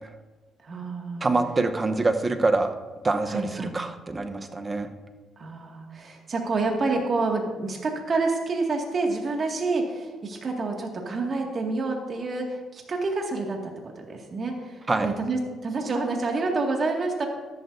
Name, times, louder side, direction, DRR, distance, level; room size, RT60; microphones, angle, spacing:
voice 1, 0.6-1.3 3.3-3.8 5.4-17.3, right 3 dB, 45° right, 1 dB, 2.0 m, -28 dB
voice 2, 1.2-2.7 3.0-4.9 14.9-15.1, right 3 dB, 25° right, 7 dB, 0.9 m, -25 dB
13.5 x 11.0 x 2.7 m, 1.3 s
cardioid pair, 90°, 0 cm